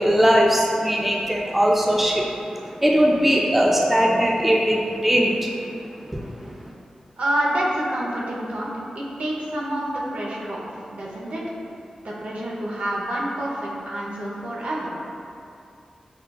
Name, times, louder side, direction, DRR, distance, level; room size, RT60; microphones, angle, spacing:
voice 1, 0.0-6.7, equal, 10° right, -2 dB, 0.3 m, -20 dB
voice 2, 7.2-8.7 9.0-11.4 12.0-15.0, right 1 dB, 70° right, -4 dB, 0.6 m, -28 dB
5.5 x 2.3 x 2.2 m, 2.6 s
wide cardioid pair, 90°, 2 cm